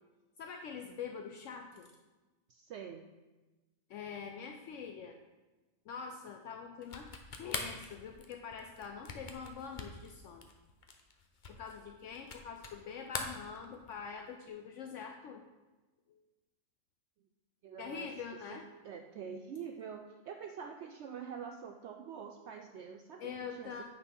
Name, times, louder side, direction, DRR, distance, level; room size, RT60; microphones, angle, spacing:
voice 1, 0.4-1.9 3.9-5.2 5.9-7.1 7.4-10.5 11.5-15.4 16.1-16.2 17.8-18.6 23.2-23.8, left 6 dB, 70° left, 4 dB, 0.9 m, -44 dB
voice 2, 2.5-3.1 17.6-18.1 18.5-23.8, right 7 dB, 65° right, 4 dB, 0.8 m, -46 dB
sound 1, 6.8-12.8 13.1-14.1, left 4 dB, 45° left, 0.8 m, -43 dB
8.8 x 4.2 x 5.4 m, 1.2 s
omnidirectional pair, 1.4 m